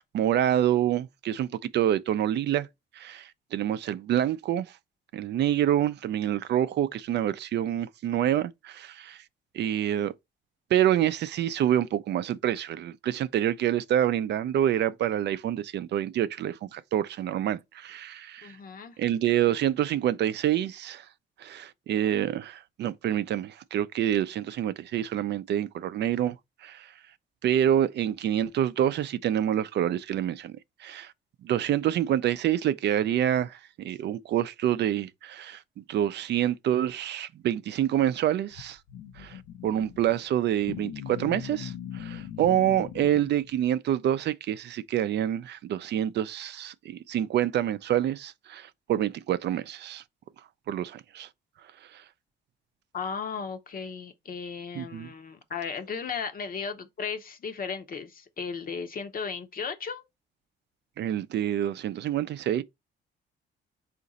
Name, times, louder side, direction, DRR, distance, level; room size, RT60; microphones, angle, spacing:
voice 1, 0.0-2.7 3.0-4.7 5.1-9.2 9.5-10.1 10.7-18.5 19.0-21.0 21.4-26.4 26.6-26.9 27.4-31.1 31.4-38.8 39.2-39.4 39.6-50.0 50.7-51.3 51.9-52.0 54.7-55.1 61.0-62.6, right 11 dB, 60° right, 0.4 m, -27 dB
voice 2, 18.4-19.0 52.9-60.0, left 6 dB, 45° left, 0.7 m, -35 dB
sound 1, 38.5-43.7, left 10 dB, 90° left, 0.5 m, -40 dB
3.9 x 2.5 x 4.0 m
cardioid pair, 90°, 20 cm